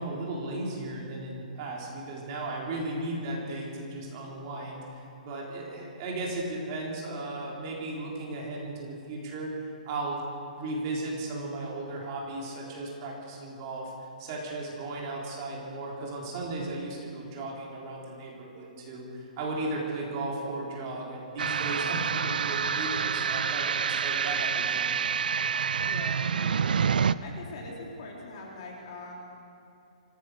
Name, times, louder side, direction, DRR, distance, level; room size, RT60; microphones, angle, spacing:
voice 1, 0.0-4.8 5.2-9.5 9.8-13.9 14.2-23.7 24.0-24.9, right 2 dB, 25° right, -3 dB, 3.9 m, -35 dB
sound 1, 21.4-27.1, right 6 dB, 75° right, 0.6 m, -27 dB
voice 2, 25.7-26.8 27.2-29.1, left 2 dB, 35° left, -2 dB, 3.5 m, -42 dB
25.0 x 17.0 x 6.4 m, 2.9 s
hypercardioid pair, 175°, 5 cm